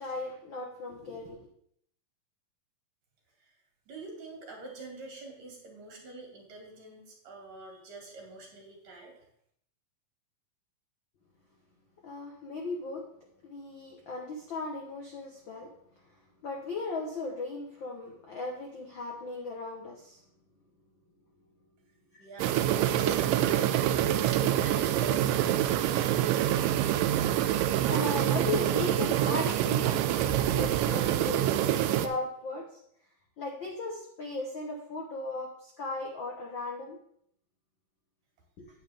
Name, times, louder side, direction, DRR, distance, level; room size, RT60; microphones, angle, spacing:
voice 1, 0.0-1.5 12.0-13.0 13.4-15.7 16.0-16.1 16.4-20.2 22.1-22.3 22.6-22.7 27.9-31.4 31.9-32.8 33.4-37.0 38.6-38.7, left 3 dB, 75° left, 0 dB, 1.1 m, -37 dB
voice 2, 3.9-9.3 22.2-26.2, right 2 dB, 70° right, 0 dB, 4.0 m, -45 dB
sound 1, 22.4-32.1, right 12 dB, 85° right, 2.2 m, -26 dB
9.5 x 8.7 x 3.5 m, 0.68 s
omnidirectional pair, 3.9 m